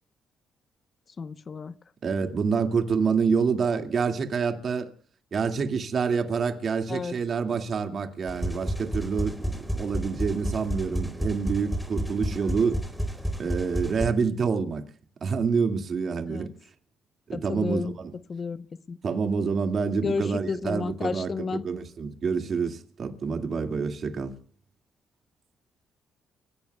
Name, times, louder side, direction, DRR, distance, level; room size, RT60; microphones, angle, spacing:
voice 1, 1.2-1.7 6.9-7.1 12.3-12.6 16.3-16.5 17.3-17.9 18.3-19.0 20.0-21.6, left 5 dB, 40° left, 1.0 m, -32 dB
voice 2, 2.0-4.9 5.3-12.8 13.4-14.8 15.2-16.5 17.3-18.1 19.0-24.3, right 5 dB, 50° right, 2.2 m, -27 dB
sound 1, 8.3-14.1, equal, ahead, 4.2 m, -31 dB
29.5 x 17.0 x 2.3 m
cardioid pair, 90°, 0 cm